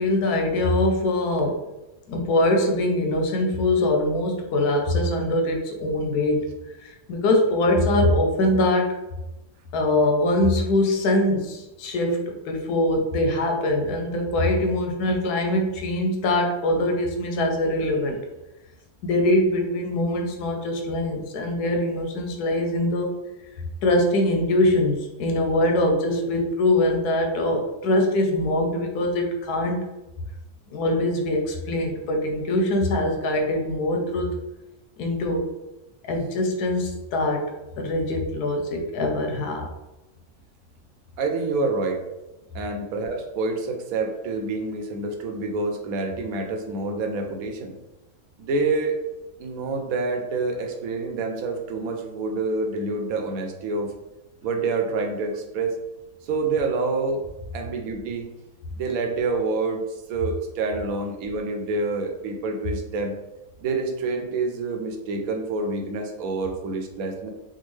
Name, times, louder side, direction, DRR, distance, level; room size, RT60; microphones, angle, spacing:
voice 1, 0.0-1.5 2.1-6.4 6.8-9.0 9.7-18.2 19.0-23.2 23.8-29.8 30.7-34.4 35.0-35.4 36.0-39.7, left 1 dB, 85° left, 2 dB, 1.2 m, -23 dB
voice 2, 41.2-42.0 42.5-47.7 48.4-49.0 49.4-53.9 54.4-55.8 56.2-57.2 57.5-58.3 58.8-59.8 60.1-63.1 63.6-67.3, right 3 dB, 70° right, 3 dB, 1.0 m, -27 dB
3.5 x 2.2 x 3.1 m, 0.98 s
omnidirectional pair, 1.6 m